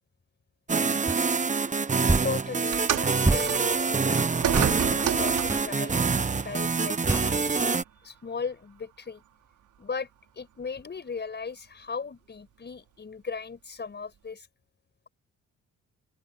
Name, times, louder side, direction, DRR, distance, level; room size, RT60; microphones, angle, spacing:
sound 1, 0.7-7.8, right 5 dB, 25° right, 1.1 m, -26 dB
sound 2, 1.1-1.2 2.1-2.3 3.2-3.5 4.5-4.7 5.5-5.7 7.1-7.3, right 2 dB, 10° right, 0.5 m, -26 dB
voice 1, 2.2-9.2 9.8-10.1 10.3-14.5, left 5 dB, 35° left, 5.8 m, -37 dB
sound 3, 2.7-5.8 6.8-6.9 7.8-7.9, right 11 dB, 80° right, 4.5 m, -31 dB
open air
cardioid pair, 90°, 30 cm